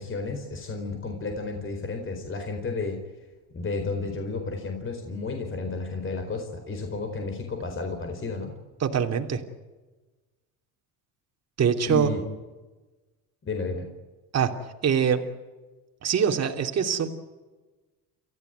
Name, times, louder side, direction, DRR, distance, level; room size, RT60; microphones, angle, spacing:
voice 1, 0.0-3.0 3.5-8.5 11.9-12.2 13.4-13.9, left 3 dB, 30° left, 5 dB, 4.5 m, -32 dB
voice 2, 8.8-9.4 11.6-12.1 14.3-14.5 14.8-15.2 16.0-17.1, right 7 dB, 40° right, 4 dB, 2.9 m, -23 dB
29.5 x 15.0 x 9.3 m, 1.2 s
supercardioid pair, 105°, 39 cm